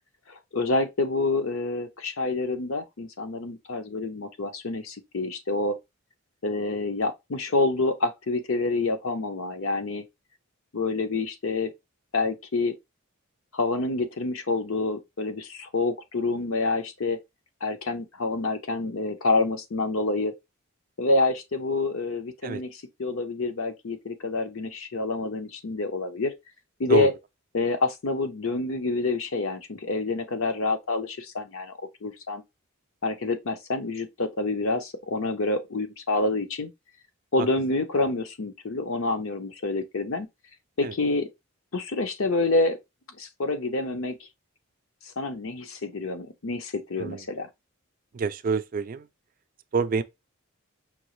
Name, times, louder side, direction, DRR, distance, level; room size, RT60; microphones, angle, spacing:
voice 1, 0.3-5.8 6.4-10.0 10.7-11.7 12.1-12.7 13.5-17.2 17.6-20.3 21.0-26.3 26.8-27.1 27.5-31.7 32.0-32.4 33.0-36.7 37.3-40.3 40.8-41.3 41.7-42.8 43.2-44.2 45.2-47.5, left 3 dB, 65° left, 0.8 m, -27 dB
voice 2, 48.1-49.1 49.7-50.0, right 5 dB, 40° right, 0.3 m, -27 dB
5.3 x 2.9 x 3.1 m
head